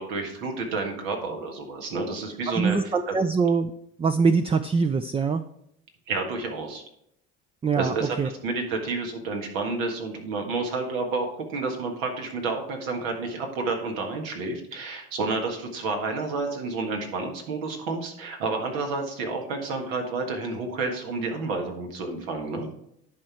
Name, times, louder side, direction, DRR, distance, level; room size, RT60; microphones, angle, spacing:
voice 1, 0.0-3.2 6.1-6.8 7.8-22.7, right 3 dB, 85° right, 3 dB, 1.6 m, -30 dB
voice 2, 2.6-3.7 4.0-5.4 7.6-8.3, right 5 dB, 15° right, 10 dB, 0.3 m, -23 dB
10.5 x 4.4 x 4.5 m, 0.75 s
hypercardioid pair, 65°, 39 cm